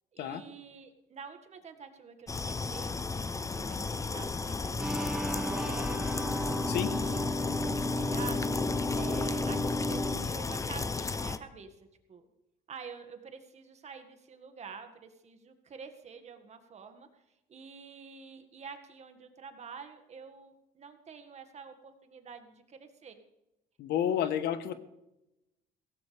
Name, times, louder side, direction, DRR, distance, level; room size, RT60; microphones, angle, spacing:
voice 1, 0.1-6.2 6.9-8.4 8.9-11.8 12.1-12.2 12.7-17.2 17.5-23.2, right 6 dB, 40° right, 6 dB, 1.9 m, -48 dB
sound 1, 2.3-11.4, left 4 dB, 20° left, 0.7 m, -34 dB
sound 2, 4.8-10.2, left 1 dB, 5° right, 1.2 m, -33 dB
voice 2, 23.8-24.7, left 10 dB, 75° left, 11 dB, 1.2 m, -30 dB
16.5 x 16.0 x 3.4 m, 0.91 s
cardioid pair, 110°, 17 cm